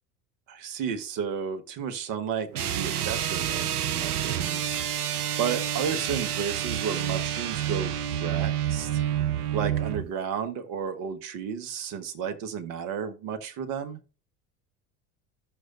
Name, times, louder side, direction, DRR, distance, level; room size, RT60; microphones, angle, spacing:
voice 1, 0.5-4.8 5.4-7.9 8.2-9.0 9.5-14.0, right 7 dB, 45° right, 8 dB, 1.3 m, -32 dB
sound 1, 2.5-10.1, right 10 dB, 85° right, 0.5 m, -28 dB
14.5 x 6.4 x 2.6 m, 0.34 s
figure-of-eight pair, 70°, 44 cm